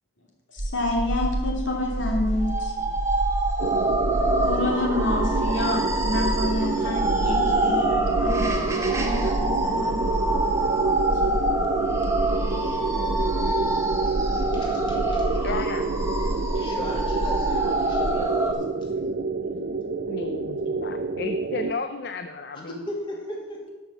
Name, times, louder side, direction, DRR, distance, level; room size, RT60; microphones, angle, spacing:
sound 1, 0.6-18.2, right 1 dB, 35° right, 0.8 m, -30 dB
voice 1, 0.7-2.7 4.4-9.9, left 2 dB, 80° left, 0 dB, 2.9 m, -28 dB
sound 2, 2.4-18.5, right 2 dB, 15° right, 1.1 m, -27 dB
sound 3, 3.6-21.7, right 4 dB, 50° right, 0.4 m, -28 dB
voice 2, 12.3-13.0 14.3-15.5 16.5-18.6 22.5-23.7, equal, 25° left, -1 dB, 2.2 m, -37 dB
voice 3, 15.4-15.8 20.1-22.8, left 4 dB, 55° left, 8 dB, 0.6 m, -33 dB
13.0 x 5.8 x 7.3 m, 1.2 s
head